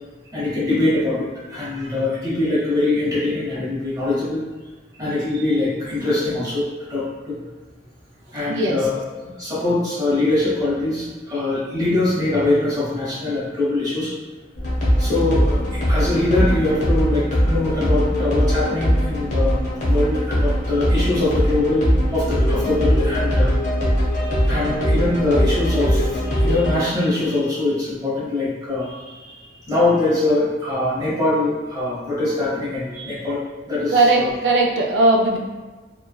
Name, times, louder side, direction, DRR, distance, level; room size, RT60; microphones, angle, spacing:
voice 1, 0.3-4.4 5.0-7.3 8.3-14.1 15.0-19.6 19.8-23.5 24.1-29.3 29.6-34.3, left 2 dB, 20° right, -9 dB, 0.9 m, -23 dB
voice 2, 8.5-8.8 33.9-35.4, right 2 dB, 80° right, 1 dB, 0.4 m, -18 dB
sound 1, 14.6-26.7, equal, 40° left, 0.8 m, -20 dB
3.1 x 2.2 x 2.2 m, 1.3 s
head